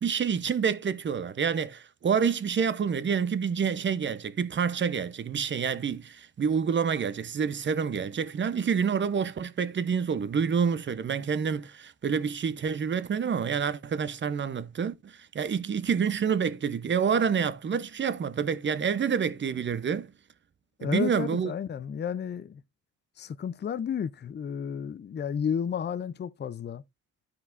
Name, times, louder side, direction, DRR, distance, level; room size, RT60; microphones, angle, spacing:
voice 1, 0.0-20.1 20.8-21.5, right 6 dB, 40° right, 0.9 m, -28 dB
voice 2, 20.8-22.6 23.2-26.8, left 7 dB, 35° left, 0.6 m, -32 dB
13.0 x 5.0 x 2.6 m
cardioid pair, 90°, 30 cm